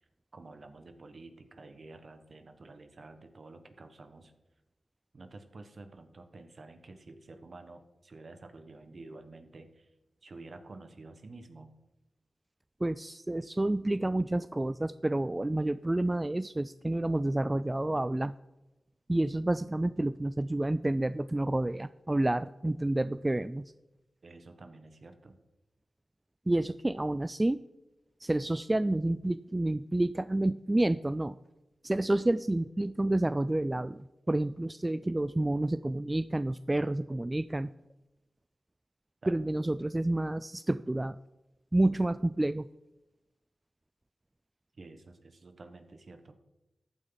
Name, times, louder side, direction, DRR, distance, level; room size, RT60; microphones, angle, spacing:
voice 1, 0.3-4.3 5.1-9.9 10.2-11.7 24.2-25.4 39.2-39.4 44.7-46.3, right 3 dB, 55° right, 7 dB, 1.4 m, -50 dB
voice 2, 12.8-18.3 19.1-23.7 26.5-27.6 28.2-31.4 31.8-34.0 34.3-37.7 39.3-41.2 41.7-42.7, right 1 dB, 20° right, 14 dB, 0.3 m, -29 dB
14.5 x 9.1 x 4.0 m, 0.98 s
wide cardioid pair, 75°, 0 cm